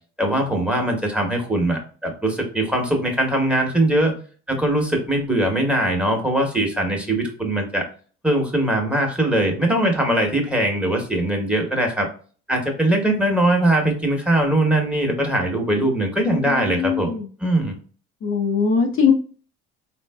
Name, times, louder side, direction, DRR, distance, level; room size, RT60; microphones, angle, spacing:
voice 1, 0.2-4.1 4.5-7.8 8.2-12.1 12.5-17.1 17.4-17.8, right 1 dB, 5° right, 2 dB, 1.1 m, -21 dB
voice 2, 16.3-17.3 18.2-19.1, left 6 dB, 45° left, 1 dB, 0.7 m, -21 dB
3.7 x 2.6 x 2.2 m, 0.40 s
supercardioid pair, 80°, 29 cm